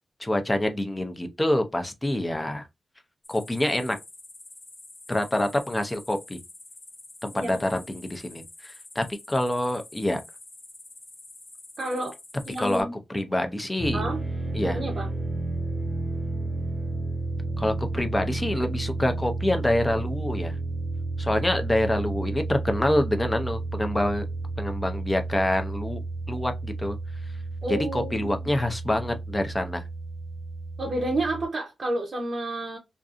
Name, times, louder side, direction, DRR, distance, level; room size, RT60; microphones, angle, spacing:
voice 1, 0.2-2.6 3.3-4.0 5.1-6.4 7.2-10.2 12.6-12.9 13.1-14.0 14.5-14.8 17.6-20.5 21.2-24.3 24.6-26.0 26.3-27.0 27.7-29.8, left 1 dB, 15° left, 0.5 m, -26 dB
sound 1, 3.2-12.8, left 2 dB, 35° left, 0.8 m, -47 dB
voice 2, 11.8-12.2 12.5-12.9 13.9-14.2 14.6-15.1 27.6-28.4 30.8-32.8, right 1 dB, 50° right, 0.6 m, -30 dB
sound 2, 13.8-31.4, right 2 dB, 10° right, 1.1 m, -32 dB
2.6 x 2.4 x 2.4 m
wide cardioid pair, 125°, 0 cm